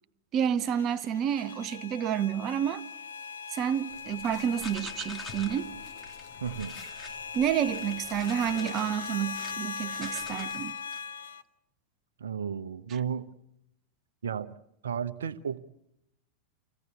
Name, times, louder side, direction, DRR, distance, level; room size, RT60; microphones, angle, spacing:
voice 1, 0.3-2.8 3.5-5.7 7.3-10.8, right 9 dB, 35° right, 0.8 m, -29 dB
sound 1, 0.6-11.4, left 5 dB, 70° left, 0.8 m, -40 dB
sound 2, 3.9-10.6, left 5 dB, 40° left, 1.7 m, -50 dB
sound 3, 4.6-5.6 6.0-6.2 6.5-9.6 9.9-11.0, left 2 dB, 10° left, 2.1 m, -47 dB
voice 2, 6.4-6.8 12.2-13.3 14.2-14.5 14.8-15.6, right 7 dB, 65° right, 0.9 m, -33 dB
26.0 x 16.5 x 8.4 m
figure-of-eight pair, 90°, 0 cm